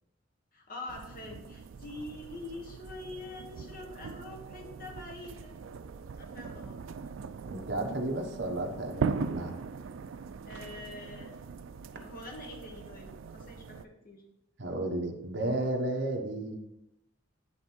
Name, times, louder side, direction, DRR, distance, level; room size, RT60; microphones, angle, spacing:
voice 1, 0.5-5.6 6.2-6.8 10.5-11.4 11.9-14.2, left 2 dB, 50° left, 0 dB, 1.6 m, -45 dB
sound 1, 0.9-13.8, right 5 dB, 85° right, 0.4 m, -40 dB
voice 2, 7.4-9.5 14.6-16.6, right 1 dB, 65° right, 2 dB, 1.2 m, -33 dB
9.8 x 3.5 x 4.5 m, 0.87 s
head